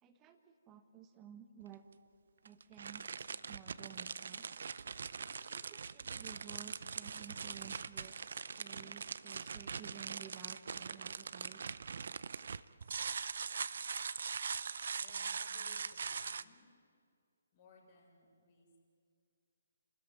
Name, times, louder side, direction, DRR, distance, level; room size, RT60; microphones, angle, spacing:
voice 1, 0.0-1.9 2.4-3.1 3.5-4.5 5.5-8.2 8.6-11.6, right 8 dB, 20° right, 8 dB, 1.3 m, -54 dB
sound 1, 1.6-1.7 2.4-16.4, right 6 dB, 55° right, 0.6 m, -42 dB
voice 2, 15.0-16.7 17.5-18.8, left 4 dB, 35° left, -1 dB, 6.6 m, -63 dB
29.0 x 13.5 x 9.9 m, 2.2 s
figure-of-eight pair, 140°, 0 cm